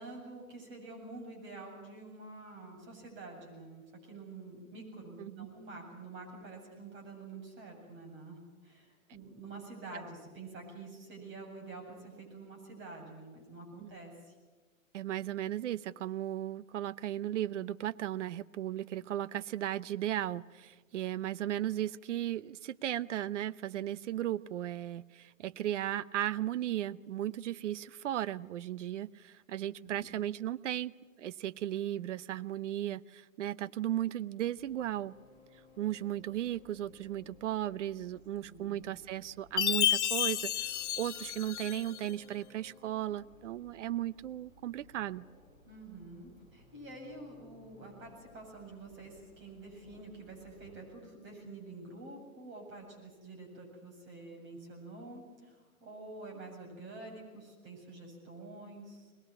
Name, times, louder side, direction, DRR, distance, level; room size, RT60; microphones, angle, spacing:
voice 1, 0.0-14.3 29.8-30.1 38.5-38.8 45.7-59.1, right 2 dB, 25° right, 2 dB, 7.7 m, -48 dB
voice 2, 14.9-30.9 31.2-35.2 35.8-40.7 41.0-45.2, right 12 dB, 60° right, 17 dB, 0.7 m, -36 dB
sound 1, 34.6-50.7, left 2 dB, 10° right, 5.6 m, -61 dB
Chime, 39.6-42.1, left 11 dB, 55° left, 0.9 m, -31 dB
21.5 x 21.0 x 9.8 m, 1.3 s
hypercardioid pair, 120°, 42 cm